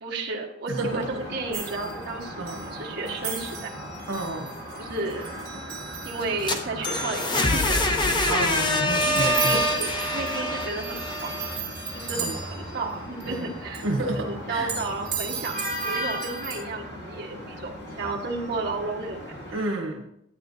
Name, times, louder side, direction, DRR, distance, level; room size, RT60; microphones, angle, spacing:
voice 1, 0.0-3.7 4.8-5.3 6.0-8.3 8.9-11.5 11.9-13.8 14.1-19.4, right 3 dB, 60° right, -2 dB, 1.3 m, -33 dB
sound 1, 0.7-19.6, equal, 55° left, 2.9 m, -38 dB
voice 2, 0.7-1.0 2.4-2.6 4.1-4.5 8.2-9.6 12.2-12.4 13.2-13.5 13.8-14.8 19.5-20.0, right 2 dB, 90° right, 2 dB, 1.2 m, -30 dB
sound 2, 1.5-2.7 3.1-6.5 6.9-7.0 7.3-7.4 7.8-8.4 8.7-12.9 13.2-13.5 13.7-13.8 14.7-16.6, right 6 dB, 40° right, 2.0 m, -36 dB
sound 3, 6.2-12.1, left 1 dB, 25° left, 0.7 m, -25 dB
11.0 x 8.9 x 2.6 m, 0.78 s
head